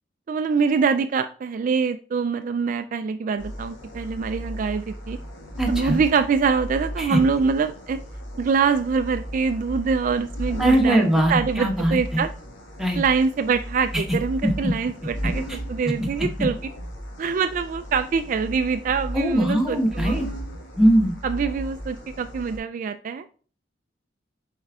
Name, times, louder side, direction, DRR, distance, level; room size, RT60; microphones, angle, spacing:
voice 1, 0.3-5.2 5.7-8.0 8.4-12.3 13.0-16.6 17.2-20.2 21.2-23.2, right 5 dB, 45° right, 9 dB, 0.3 m, -24 dB
sound 1, 3.4-22.6, equal, 85° left, 1.8 m, -35 dB
voice 2, 5.6-6.0 7.0-7.2 10.6-12.2 12.8-13.0 14.4-14.5 19.1-20.2 20.8-21.1, right 1 dB, ahead, 0 dB, 1.1 m, -21 dB
7.2 x 4.5 x 3.6 m, 0.41 s
head